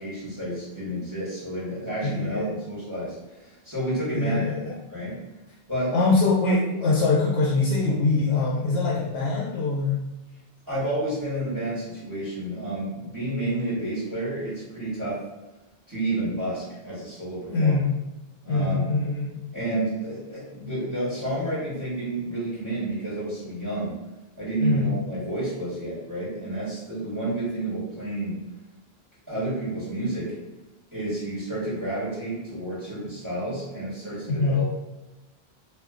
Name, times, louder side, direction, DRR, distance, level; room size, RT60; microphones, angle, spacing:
voice 1, 0.0-5.2 5.7-6.0 10.7-15.2 15.9-17.8 18.4-18.9 19.5-23.9 24.4-28.4 29.3-30.3 30.9-34.7, right 1 dB, 20° right, -9 dB, 1.2 m, -30 dB
voice 2, 2.0-2.5 4.1-4.7 5.9-10.0 17.5-17.8 18.5-19.4 24.6-24.9 34.3-34.6, left 3 dB, 85° left, -2 dB, 0.8 m, -23 dB
2.5 x 2.4 x 3.6 m, 1.0 s
omnidirectional pair, 1.1 m